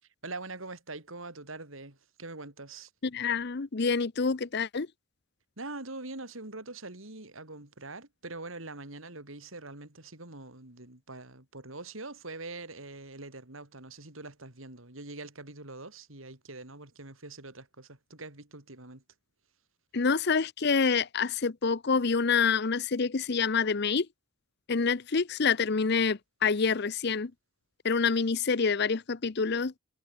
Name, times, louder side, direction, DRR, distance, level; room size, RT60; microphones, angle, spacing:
voice 1, 0.2-2.9 5.6-19.0, right 2 dB, 75° right, 4.1 m, -43 dB
voice 2, 3.0-4.9 19.9-24.1 24.7-27.3 27.8-29.8, left 5 dB, 55° left, 0.7 m, -27 dB
head